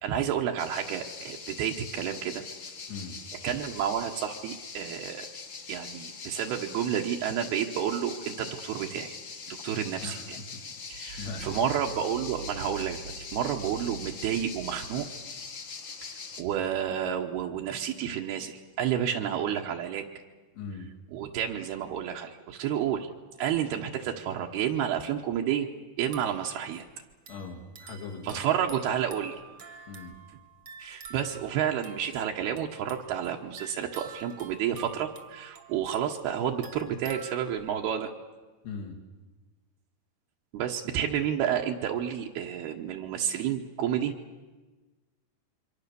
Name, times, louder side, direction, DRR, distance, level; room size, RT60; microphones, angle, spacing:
voice 1, 0.0-2.4 3.4-5.3 5.7-9.1 9.5-10.4 10.9-15.1 16.0-20.0 21.1-23.1 23.4-25.7 26.0-26.9 28.2-29.4 30.8-38.1 40.5-44.1, right 9 dB, 75° right, 1 dB, 3.0 m, -30 dB
sound 1, 0.6-16.4, left 5 dB, 45° left, 1.6 m, -42 dB
voice 2, 2.9-3.2 10.0-10.6 11.0-11.6 20.5-20.9 27.3-28.4 29.9-30.2 38.6-39.0, left 4 dB, 80° left, 0 dB, 4.9 m, -40 dB
sound 2, 26.0-37.9, right 6 dB, 45° right, 1.6 m, -48 dB
27.0 x 24.0 x 6.9 m, 1.3 s
omnidirectional pair, 4.8 m